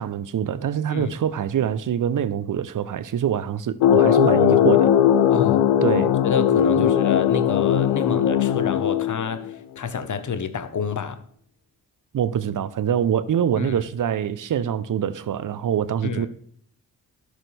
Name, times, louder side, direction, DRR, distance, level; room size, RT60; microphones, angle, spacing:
voice 1, 0.0-4.9 5.8-6.1 6.8-6.9 12.1-16.3, right 9 dB, 55° right, 0.7 m, -25 dB
sound 1, 3.8-9.5, left 10 dB, 85° left, 0.6 m, -19 dB
voice 2, 4.2-4.7 5.3-5.6 6.2-11.2 13.6-13.8 16.0-16.3, left 5 dB, 50° left, 1.1 m, -28 dB
12.0 x 6.4 x 3.4 m
hypercardioid pair, 40°, 39 cm